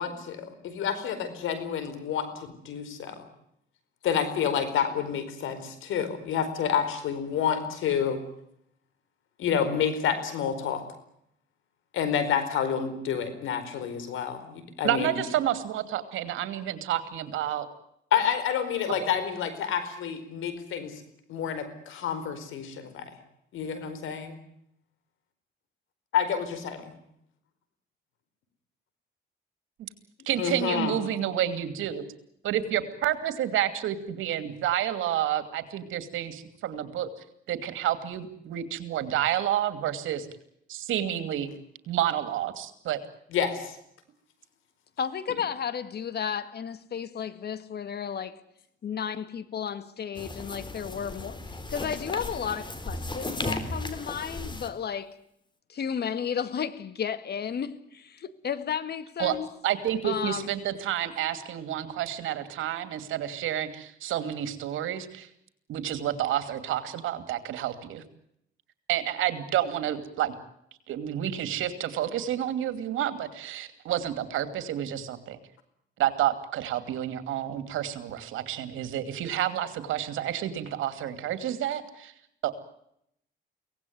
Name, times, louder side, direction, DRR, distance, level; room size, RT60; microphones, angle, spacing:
voice 1, 0.0-3.2 4.0-8.2 9.4-10.8 11.9-15.2 18.1-21.0 21.3-23.1 23.5-24.4 26.1-26.9 30.4-31.0 43.3-43.8, left 8 dB, 85° left, 4.7 m, -29 dB
voice 2, 14.8-17.7 30.3-32.0 32.4-37.1 37.5-40.3 40.7-41.5 41.9-43.0 59.2-59.4 59.6-65.3 65.7-68.0 68.9-70.3 70.9-75.4 76.0-82.1 82.4-82.5, right 11 dB, 85° right, 2.7 m, -29 dB
voice 3, 45.0-48.4 48.8-55.2 55.7-59.5 60.0-60.5, left 7 dB, 55° left, 2.0 m, -33 dB
sound 1, 50.1-54.7, left 2 dB, 25° left, 3.7 m, -35 dB
24.5 x 18.0 x 9.5 m
cardioid pair, 90°, 20 cm